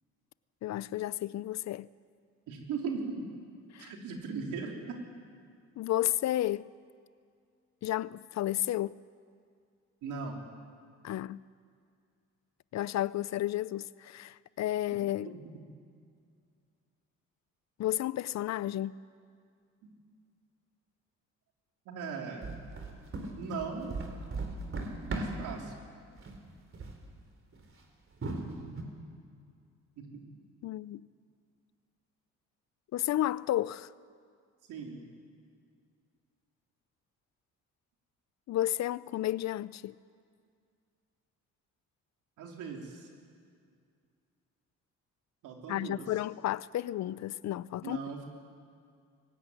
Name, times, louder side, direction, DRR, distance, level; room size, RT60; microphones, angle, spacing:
voice 1, 0.6-1.9 3.7-3.9 5.8-6.7 7.8-9.0 11.0-11.4 12.7-15.3 17.8-19.0 30.6-31.1 32.9-33.9 38.5-39.9 45.7-48.0, left 13 dB, 65° left, 0.6 m, -32 dB
voice 2, 2.5-3.2 3.8-5.0 10.0-10.4 19.8-19.9 21.9-22.6 23.4-23.9 25.1-25.8 30.0-30.2 34.7-35.0 42.4-43.1 45.4-46.1 47.8-48.2, right 5 dB, 90° right, 3.8 m, -38 dB
sound 1, 22.4-25.6 26.1-26.5 26.7-27.0 27.5-27.6 28.2-28.8, right 3 dB, 45° right, 3.8 m, -37 dB
23.5 x 16.0 x 9.8 m
cardioid pair, 90°, 30 cm